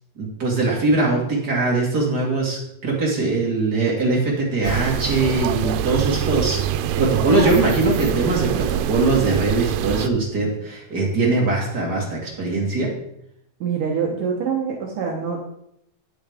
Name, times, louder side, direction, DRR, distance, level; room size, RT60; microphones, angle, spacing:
voice 1, 0.1-6.6 7.0-12.9, right 3 dB, 35° right, -3 dB, 1.6 m, -21 dB
sound 1, 4.6-10.1, right 11 dB, 90° right, 2.7 m, -24 dB
voice 2, 13.6-15.5, right 6 dB, 65° right, -1 dB, 2.2 m, -25 dB
9.7 x 8.6 x 3.6 m, 0.77 s
omnidirectional pair, 4.8 m